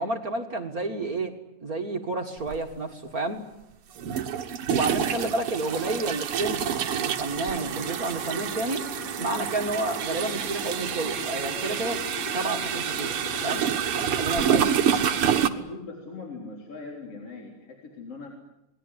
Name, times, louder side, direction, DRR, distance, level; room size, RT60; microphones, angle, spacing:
voice 1, 0.0-1.3 1.6-3.5 4.7-8.8 9.2-12.0 12.3-13.6 14.2-14.8, right 2 dB, 35° right, 4 dB, 1.8 m, -30 dB
sound 1, 2.5-2.6 4.0-15.5, right 9 dB, 55° right, 1.8 m, -28 dB
voice 2, 5.1-5.4 14.6-18.3, left 3 dB, 45° left, 0 dB, 4.6 m, -40 dB
sound 2, 7.3-15.0, left 3 dB, 80° left, 9.7 m, -40 dB
28.5 x 21.0 x 9.8 m, 0.89 s
omnidirectional pair, 3.7 m